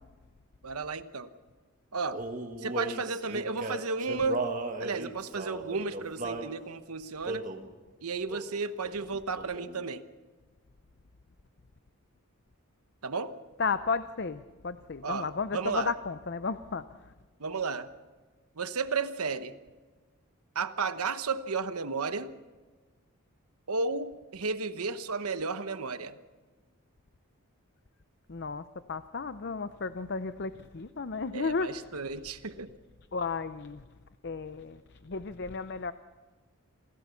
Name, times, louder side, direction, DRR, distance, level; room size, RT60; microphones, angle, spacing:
voice 1, 0.6-1.3 1.9-2.2 2.6-4.5 4.8-7.5 8.0-10.0 13.0-13.4 15.0-15.9 17.4-17.9 18.6-19.5 20.5-22.3 23.7-26.2 31.3-32.7, right 4 dB, 80° right, 11 dB, 1.1 m, -33 dB
Male singing, 2.1-6.5 7.2-7.7 8.3-8.6 8.8-9.8, right 2 dB, 35° right, 1.6 m, -36 dB
voice 2, 13.6-17.1 28.3-32.0 33.1-33.8 34.2-35.9, left 4 dB, 50° left, 12 dB, 0.6 m, -34 dB
27.5 x 17.0 x 7.1 m, 1.4 s
head